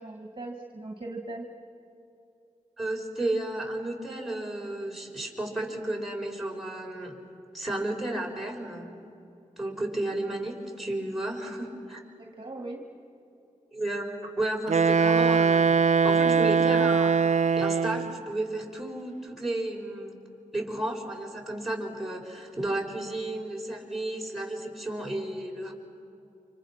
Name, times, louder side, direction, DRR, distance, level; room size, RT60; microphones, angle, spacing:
voice 1, 0.0-1.5 12.2-12.8, right 2 dB, 35° right, 2 dB, 2.1 m, -39 dB
voice 2, 2.8-7.2 7.5-8.9 9.6-12.0 13.7-15.8 16.0-17.2 17.6-20.2 20.5-25.7, right 1 dB, ahead, -1 dB, 5.0 m, -33 dB
Wind instrument woodwind instrument, 14.7-18.2, right 5 dB, 55° right, 0.6 m, -22 dB
29.0 x 26.5 x 5.9 m, 2.8 s
cardioid pair, 55°, 14 cm